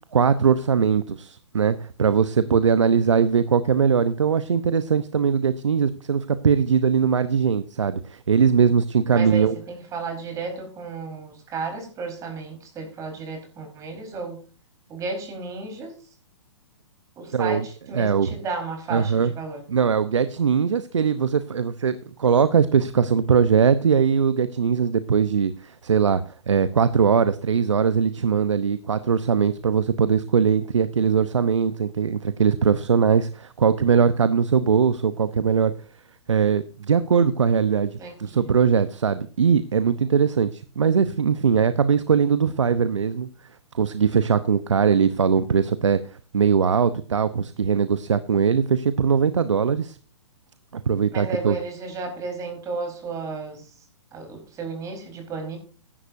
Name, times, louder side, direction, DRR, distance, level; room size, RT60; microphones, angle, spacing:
voice 1, 0.1-8.0 8.3-9.5 17.3-17.6 17.9-18.3 18.9-19.3 19.7-25.5 25.8-26.2 26.5-35.7 36.3-37.9 38.2-40.5 40.8-43.3 43.8-46.0 46.3-49.9 50.7-51.6, right 6 dB, 80° right, 13 dB, 0.9 m, -20 dB
voice 2, 9.1-14.4 14.9-16.1 17.2-19.6 38.0-38.6 51.1-55.6, right 4 dB, 20° right, 4 dB, 4.4 m, -33 dB
15.0 x 11.0 x 2.7 m, 0.37 s
hypercardioid pair, 130°, 15 cm